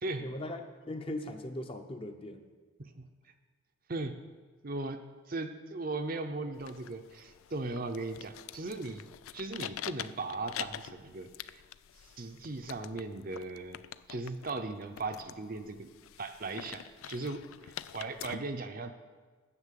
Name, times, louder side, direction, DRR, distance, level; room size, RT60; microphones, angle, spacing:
voice 1, 0.2-0.6 0.9-2.5, left 1 dB, 25° left, 6 dB, 0.7 m, -39 dB
voice 2, 4.6-5.0 5.3-9.1 9.3-11.6 12.2-13.8 14.1-15.9 16.2-18.9, right 3 dB, 45° right, 7 dB, 0.6 m, -38 dB
sound 1, 6.5-18.3, left 11 dB, 85° left, 0.4 m, -46 dB
9.8 x 7.3 x 7.5 m, 1.4 s
head